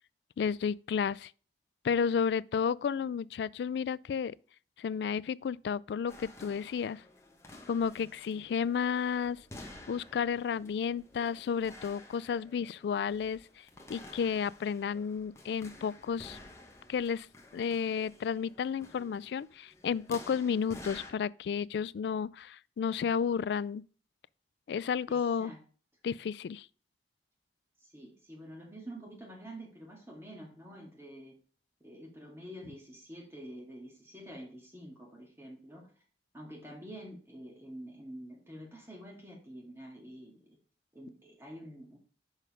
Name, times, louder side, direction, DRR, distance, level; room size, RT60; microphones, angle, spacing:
voice 1, 0.4-1.3 1.8-4.4 4.8-7.0 7.7-9.4 9.9-13.4 13.9-16.4 16.9-17.3 17.5-23.8 24.7-25.5 26.0-26.7, left 7 dB, 75° left, 0.3 m, -32 dB
sound 1, 6.1-21.1, left 2 dB, 15° left, 1.0 m, -52 dB
voice 2, 25.1-25.6 27.9-31.4 31.8-35.9 36.3-40.4 40.9-42.0, equal, 15° right, 2.0 m, -47 dB
6.4 x 5.4 x 4.9 m
head